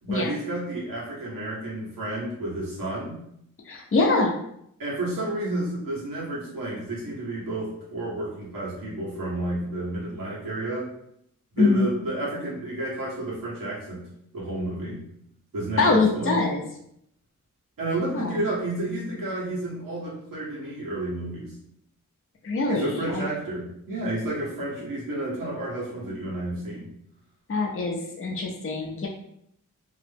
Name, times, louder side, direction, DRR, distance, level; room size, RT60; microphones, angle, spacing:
voice 1, 0.0-3.2 4.8-10.9 11.5-14.1 14.3-15.0 15.5-16.4 17.8-21.5 22.7-26.8, right 1 dB, 90° right, -6 dB, 1.3 m, -31 dB
voice 2, 3.7-4.4 11.6-11.9 15.8-16.6 18.1-18.5 22.4-23.3 27.5-29.1, left 3 dB, 40° left, 0 dB, 0.6 m, -24 dB
2.9 x 2.1 x 3.3 m, 0.73 s
wide cardioid pair, 75°, 33 cm